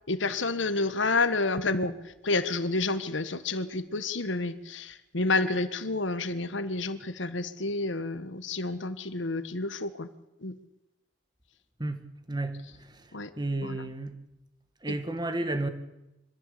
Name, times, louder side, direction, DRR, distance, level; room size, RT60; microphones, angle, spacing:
voice 1, 0.1-10.1 10.4-10.6 13.1-13.3 13.6-13.9 14.9-15.0, left 3 dB, 75° left, 1.3 m, -29 dB
voice 2, 11.8-13.0 13.4-14.2 14.8-15.7, right 2 dB, 20° right, 1.7 m, -32 dB
24.0 x 15.0 x 8.4 m
head